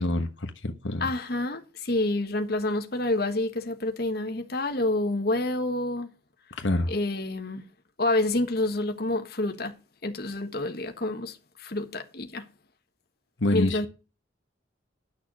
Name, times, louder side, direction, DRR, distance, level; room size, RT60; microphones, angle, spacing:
voice 1, 0.0-1.1 6.6-6.9 13.4-13.9, left 2 dB, 85° left, 1.2 m, -26 dB
voice 2, 1.0-6.1 6.9-7.6 8.0-9.7 10.0-12.4 13.5-13.9, left 2 dB, 55° left, 1.4 m, -28 dB
11.0 x 6.6 x 6.1 m
head